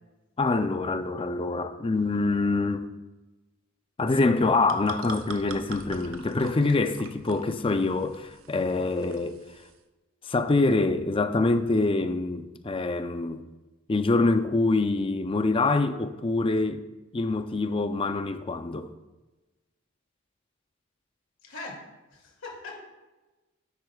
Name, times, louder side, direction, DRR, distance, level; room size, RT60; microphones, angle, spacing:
voice 1, 0.4-2.8 4.0-9.4 10.3-13.5 13.9-16.8 17.1-18.9, left 3 dB, 25° left, 0.5 m, -25 dB
sound 1, 4.3-9.8, right 5 dB, 85° right, 0.7 m, -44 dB
voice 2, 21.5-21.8 22.1-22.8, left 3 dB, 70° left, 2.5 m, -40 dB
10.5 x 8.1 x 2.4 m
head